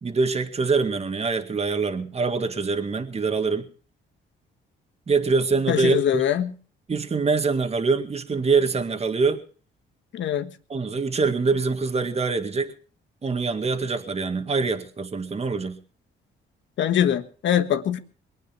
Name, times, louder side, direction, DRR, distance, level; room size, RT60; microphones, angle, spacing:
voice 1, 0.0-3.7 5.1-6.2 6.9-9.4 10.7-12.7 13.2-15.8, right 4 dB, 30° right, 1.9 m, -24 dB
voice 2, 5.7-6.5 10.1-10.5 16.8-18.0, left 10 dB, 70° left, 1.5 m, -23 dB
22.5 x 9.2 x 6.0 m
cardioid pair, 90°, 20 cm